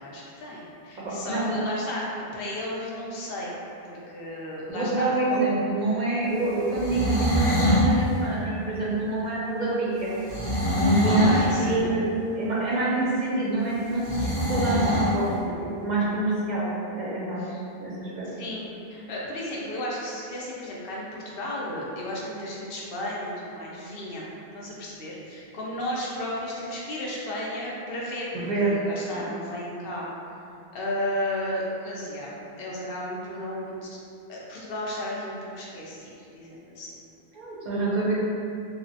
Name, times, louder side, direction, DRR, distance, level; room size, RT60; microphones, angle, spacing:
voice 1, 0.0-2.0 2.3-3.6 3.9-5.4 11.1-11.8 17.4-17.5 18.4-24.3 24.5-30.1 30.7-32.3 32.6-34.0 34.3-36.9, left 1 dB, 70° left, -5 dB, 0.7 m, -34 dB
voice 2, 1.0-1.6 4.7-10.1 10.8-12.0 12.3-14.2 14.5-15.3 15.8-16.7 16.9-17.5 17.8-18.3 28.3-28.7 29.1-29.3 37.3-38.2, right 2 dB, 55° right, -7 dB, 0.6 m, -26 dB
sound 1, 6.7-7.9 10.3-11.5 14.0-15.1, left 1 dB, 15° left, 0.5 m, -23 dB
3.2 x 2.0 x 2.6 m, 2.6 s
omnidirectional pair, 1.0 m